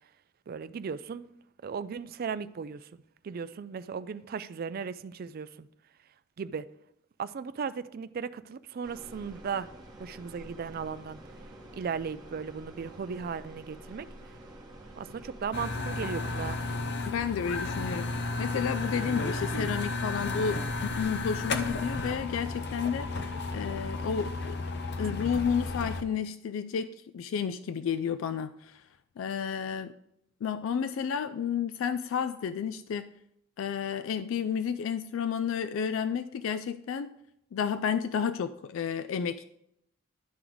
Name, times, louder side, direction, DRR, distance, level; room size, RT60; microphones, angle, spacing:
voice 1, 0.5-1.3 1.6-2.9 3.2-5.7 6.4-6.7 7.2-9.7 10.0-11.2 11.8-14.1 15.0-16.6, right 6 dB, 50° right, 0.3 m, -36 dB
sound 1, 8.8-16.8, right 1 dB, 20° right, 1.1 m, -48 dB
sound 2, 15.5-26.0, left 3 dB, 55° left, 0.7 m, -33 dB
voice 2, 17.1-24.6 25.0-28.8 29.2-29.9 30.4-33.1 33.6-37.1 37.5-39.4, left 7 dB, 75° left, 0.3 m, -31 dB
11.5 x 3.9 x 4.6 m
head